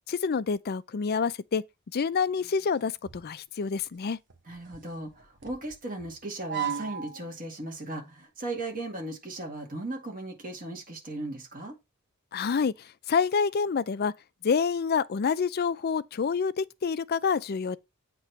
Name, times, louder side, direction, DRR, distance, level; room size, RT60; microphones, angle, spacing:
voice 1, 0.1-1.6 1.9-4.2 12.3-14.1 14.4-17.8, left 5 dB, 45° left, 0.4 m, -27 dB
sound 1, 2.4-3.3 3.6-3.8 4.3-7.4 7.9-8.2, right 8 dB, 55° right, 1.1 m, -37 dB
voice 2, 4.5-11.8, right 2 dB, 40° right, 2.1 m, -37 dB
8.2 x 3.0 x 5.6 m
head